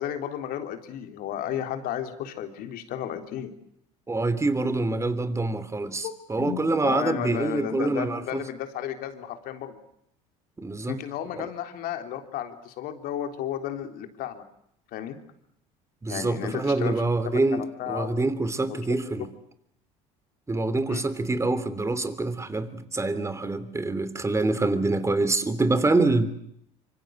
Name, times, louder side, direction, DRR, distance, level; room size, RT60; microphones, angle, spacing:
voice 1, 0.0-3.5 6.0-9.8 10.9-14.4 14.9-15.2 16.1-18.1 18.7-19.3 20.9-21.0, left 10 dB, 65° left, 7 dB, 3.5 m, -33 dB
voice 2, 4.1-8.2 10.6-11.0 11.4-11.5 16.0-19.3 20.5-26.3, right 2 dB, 15° right, 13 dB, 3.1 m, -26 dB
25.5 x 25.0 x 7.7 m, 0.73 s
supercardioid pair, 85°, 17 cm